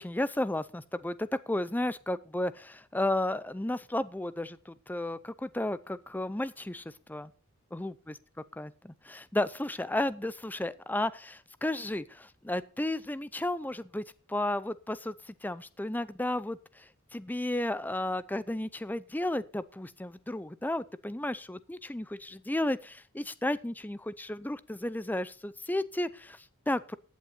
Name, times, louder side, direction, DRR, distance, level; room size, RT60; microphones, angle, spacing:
voice 1, 0.0-7.3 7.7-8.1 8.6-27.0, left 1 dB, 10° left, 16 dB, 0.5 m, -33 dB
15.0 x 8.5 x 4.2 m, 0.38 s
head